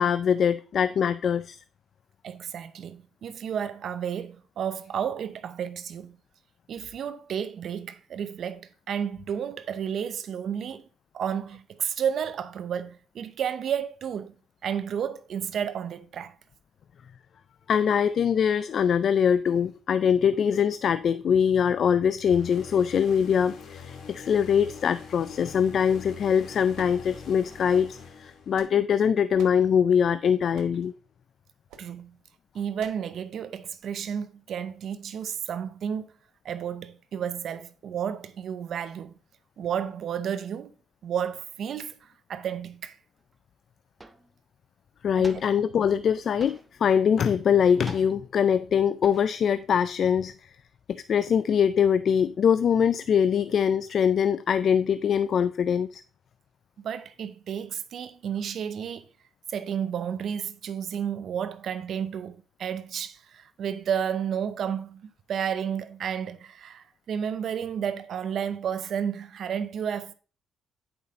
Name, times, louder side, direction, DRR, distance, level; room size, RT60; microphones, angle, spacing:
voice 1, 0.0-1.6 17.7-30.9 45.0-50.5 50.9-56.0, left 7 dB, 60° left, 0.3 m, -23 dB
voice 2, 2.2-6.2 6.7-10.8 11.1-14.3 14.6-16.4 31.8-32.2 32.5-36.1 36.4-39.1 39.6-40.7 41.0-43.0 45.1-45.3 56.8-59.1 59.5-70.1, right 8 dB, 65° right, 0.6 m, -32 dB
sound 1, 22.3-28.8, left 6 dB, 75° left, 1.6 m, -44 dB
sound 2, 26.7-27.5 28.2-29.0 29.4-29.7 30.5-30.9 31.7-31.9 32.8-33.1, right 7 dB, 90° right, 1.0 m, -49 dB
sound 3, 43.3-43.4 44.0-44.4 45.2-45.8 46.4-46.9 47.9-48.4 49.0-49.5 49.8-50.7, right 2 dB, 15° right, 0.7 m, -47 dB
8.9 x 5.1 x 3.9 m
cardioid pair, 90°, 0 cm